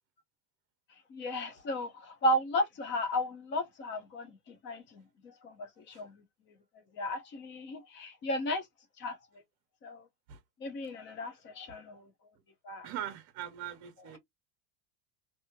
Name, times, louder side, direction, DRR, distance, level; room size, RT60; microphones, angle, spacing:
voice 1, 1.1-8.7 9.0-9.4 9.8-10.1 10.6-12.1 12.6-12.9, equal, 25° left, 0.7 m, -35 dB
voice 2, 12.8-14.2, right 11 dB, 35° right, 0.7 m, -41 dB
3.0 x 2.8 x 2.2 m
supercardioid pair, 170°, 45 cm